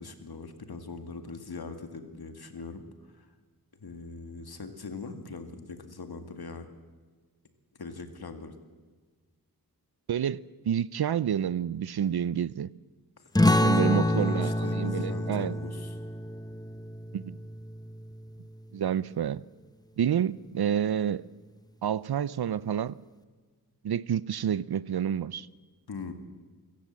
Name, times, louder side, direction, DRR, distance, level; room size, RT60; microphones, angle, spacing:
voice 1, 0.0-2.8 3.1-3.3 3.8-6.7 7.8-8.5 13.2-16.0 25.9-26.1, left 4 dB, 75° left, 2.1 m, -41 dB
voice 2, 10.1-12.7 13.6-15.6 17.1-17.3 18.7-19.4 20.0-21.2 21.8-23.0 23.8-25.5, right 9 dB, 80° right, 0.6 m, -29 dB
sound 1, 13.3-18.5, left 1 dB, 10° left, 0.9 m, -27 dB
25.0 x 15.0 x 7.5 m
wide cardioid pair, 75°, 38 cm